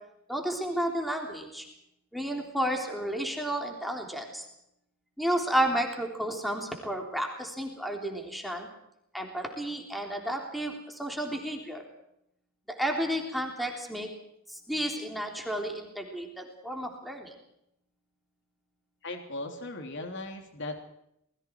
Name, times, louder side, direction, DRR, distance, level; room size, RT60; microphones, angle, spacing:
voice 1, 0.3-1.7 2.1-4.4 5.2-8.7 9.1-11.8 12.7-14.1 14.5-17.3, right 1 dB, ahead, 1 dB, 3.5 m, -32 dB
voice 2, 19.0-20.8, left 2 dB, 60° left, 4 dB, 3.2 m, -38 dB
27.0 x 21.5 x 4.7 m, 0.79 s
head